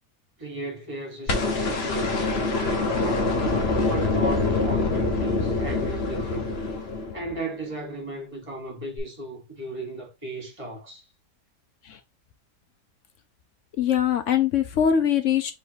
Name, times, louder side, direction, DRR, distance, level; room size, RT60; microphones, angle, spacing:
voice 1, 0.4-3.4 3.8-6.6 7.1-11.1, right 2 dB, 20° right, 1.8 m, -35 dB
Cinematic Hit Distorted A, 1.3-7.5 9.0-9.1, left 3 dB, 45° left, 1.1 m, -25 dB
voice 2, 13.8-15.5, left 8 dB, 65° left, 0.8 m, -22 dB
3.7 x 3.1 x 4.6 m
omnidirectional pair, 1.8 m